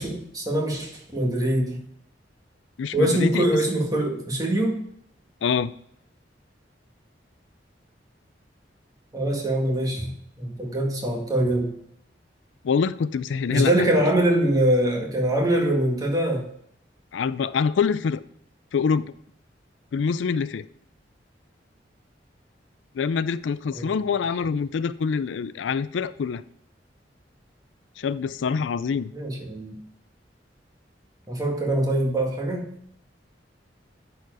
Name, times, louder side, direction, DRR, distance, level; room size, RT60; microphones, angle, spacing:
voice 1, 0.0-1.8 2.9-4.8 9.1-10.1 10.4-11.7 13.5-16.5 23.7-23.9 29.1-29.8 31.3-32.7, right 1 dB, 20° right, 0 dB, 2.0 m, -23 dB
voice 2, 2.8-3.5 5.4-5.7 12.6-13.9 17.1-18.2 18.7-19.1 19.9-20.6 22.9-26.4 28.0-29.1, left 6 dB, 90° left, 16 dB, 0.4 m, -25 dB
10.5 x 4.8 x 4.8 m, 0.69 s
head